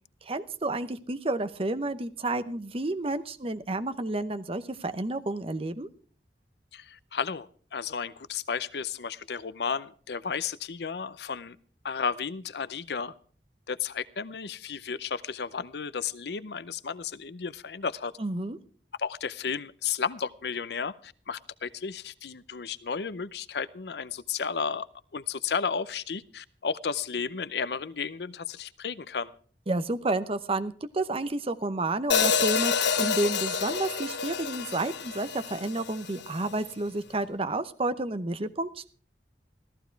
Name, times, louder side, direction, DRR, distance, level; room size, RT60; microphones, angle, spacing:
voice 1, 0.2-5.9 18.2-18.6 29.7-38.9, right 2 dB, 35° right, 11 dB, 0.8 m, -30 dB
voice 2, 6.7-11.6 11.8-13.1 13.7-18.1 19.0-24.9 25.1-29.3, left 6 dB, 65° left, 17 dB, 0.6 m, -33 dB
Hi-hat, 32.1-36.3, left 6 dB, 80° left, 1.3 m, -28 dB
14.5 x 14.5 x 4.5 m, 0.43 s
head